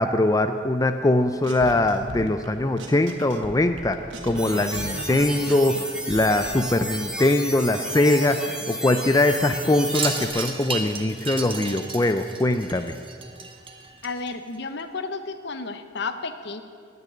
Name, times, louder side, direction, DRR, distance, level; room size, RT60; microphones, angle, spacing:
voice 1, 0.0-4.0 4.2-8.4 8.7-13.0, left 2 dB, 20° left, 8 dB, 0.5 m, -22 dB
sound 1, 1.4-2.5 2.8-6.5, right 2 dB, 80° right, 1.6 m, -38 dB
sound 2, 4.4-10.3, equal, 5° right, 1.8 m, -32 dB
Wind chime, 9.9-14.6, right 4 dB, 30° right, 1.3 m, -33 dB
voice 2, 14.0-16.6, left 3 dB, 60° left, 10 dB, 1.0 m, -32 dB
17.5 x 6.8 x 9.9 m, 2.3 s
head